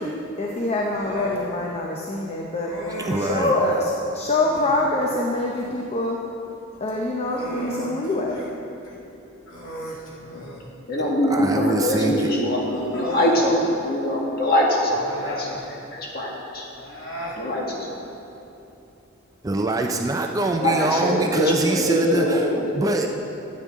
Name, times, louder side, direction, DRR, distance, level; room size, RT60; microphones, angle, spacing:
voice 1, 0.0-2.7 3.1-6.2 6.8-8.4, left 2 dB, 30° left, -1 dB, 0.7 m, -25 dB
Human voice, 0.9-1.4 2.6-3.5 4.3-4.8 6.7-8.5 8.8-9.0 9.5-10.7 11.9-12.0 12.7-13.5 14.9-15.7 16.7-17.4, equal, 85° left, 1.8 m, -35 dB
voice 2, 3.0-3.5 11.3-12.3 19.4-22.5 22.8-23.1, right 2 dB, 15° right, 3 dB, 0.4 m, -24 dB
voice 3, 7.3-7.8 10.9-16.6 17.4-17.9 20.6-23.0, equal, 50° left, -3 dB, 1.9 m, -23 dB
13.0 x 8.6 x 3.7 m, 2.8 s
head